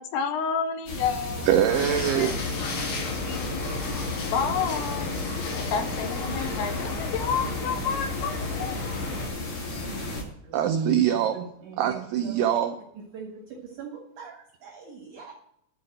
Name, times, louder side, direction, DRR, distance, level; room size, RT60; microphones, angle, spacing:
voice 1, 0.0-1.5 2.2-2.3 2.8-3.5 4.3-5.2 5.6-9.1, left 6 dB, 80° left, 8 dB, 2.9 m, -30 dB
sound 1, 0.9-10.2, left 1 dB, 45° left, 1.8 m, -34 dB
voice 2, 1.4-2.4 10.5-11.5 11.8-12.8, right 10 dB, 85° right, 6 dB, 2.3 m, -23 dB
sound 2, 1.7-9.3, left 3 dB, 65° left, 4.1 m, -33 dB
voice 3, 10.4-10.8 11.1-11.3 11.6-12.4 12.9-15.3, right 5 dB, 65° right, 1 dB, 2.0 m, -43 dB
12.0 x 4.7 x 7.6 m, 0.73 s
omnidirectional pair, 5.5 m